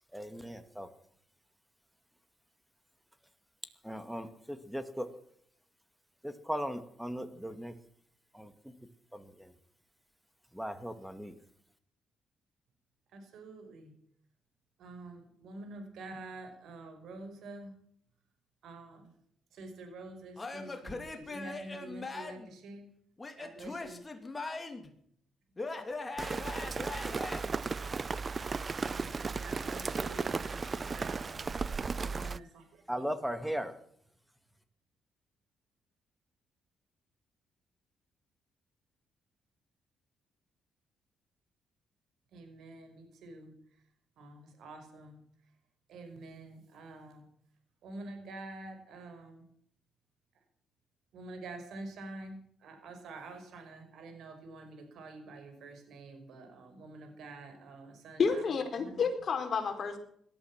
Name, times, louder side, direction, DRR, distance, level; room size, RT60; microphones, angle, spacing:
voice 1, 0.1-0.9 3.8-5.1 6.2-7.7 8.3-8.7 9.1-9.5 10.5-11.3 32.9-33.7, equal, 5° right, 11 dB, 2.1 m, -38 dB
voice 2, 13.1-13.9 14.8-17.7 18.6-19.1 19.5-22.9 23.4-24.0 28.8-31.5 32.0-32.8 42.3-43.8 44.2-45.2 45.9-47.3 47.8-49.4 50.3-50.4 51.1-58.5 58.7-59.1, right 2 dB, 75° right, 6 dB, 5.3 m, -48 dB
Male speech man speaking / Yell / Laughter, 20.4-22.5 23.2-24.9 25.6-27.4, left 3 dB, 25° left, 3.0 m, -40 dB
Rain, 26.2-32.4, right 4 dB, 35° right, 0.6 m, -35 dB
voice 3, 58.2-60.0, left 5 dB, 50° left, 5 dB, 4.3 m, -30 dB
18.5 x 13.0 x 6.0 m, 0.66 s
cardioid pair, 90°, 0 cm